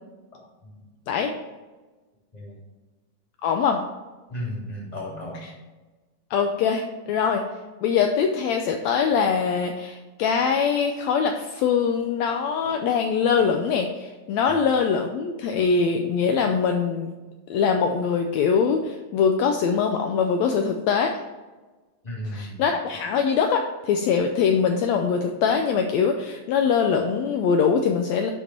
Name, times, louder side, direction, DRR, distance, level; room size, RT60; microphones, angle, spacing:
voice 1, 3.4-3.8 6.3-7.4 7.8-17.1 17.5-21.1 22.3-28.3, left 6 dB, 80° left, 4 dB, 1.6 m, -23 dB
voice 2, 4.3-5.4 14.5-14.6 22.0-23.0, left 1 dB, 15° left, -5 dB, 2.5 m, -34 dB
12.0 x 4.4 x 4.3 m, 1.2 s
omnidirectional pair, 3.7 m